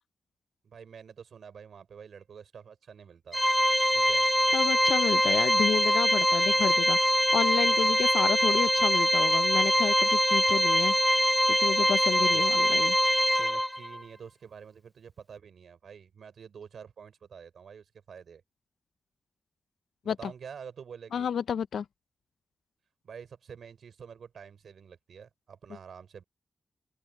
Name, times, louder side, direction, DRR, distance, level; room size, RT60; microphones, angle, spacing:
voice 1, 0.6-3.4 3.9-4.3 12.3-12.5 13.4-18.4 20.0-21.3 23.0-26.2, right 7 dB, 80° right, 4.7 m, -47 dB
Organ, 3.3-14.0, equal, 5° left, 0.8 m, -24 dB
voice 2, 4.5-11.0 11.5-13.0 20.1-20.3 21.1-21.8, left 7 dB, 85° left, 0.5 m, -31 dB
open air
cardioid pair, 50°, 0 cm